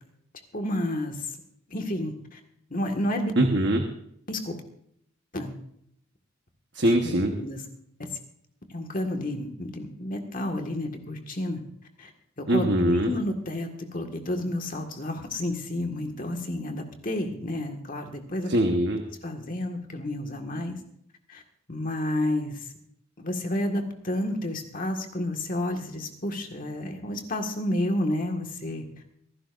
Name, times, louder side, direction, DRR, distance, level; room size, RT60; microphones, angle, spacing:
voice 1, 0.5-1.3 1.7-2.4 2.7-3.3 4.3-4.6 5.3-5.5 6.8-7.6 8.0-8.1 8.7-11.6 12.0-12.1 12.4-18.5 19.2-20.8 21.3-21.4 21.7-22.7 23.2-28.8, left 1 dB, 40° left, 3 dB, 1.8 m, -30 dB
voice 2, 3.4-3.8 6.7-7.3 12.5-13.1 18.5-19.0, right 1 dB, 55° right, 3 dB, 1.2 m, -22 dB
25.5 x 12.0 x 2.6 m, 0.69 s
head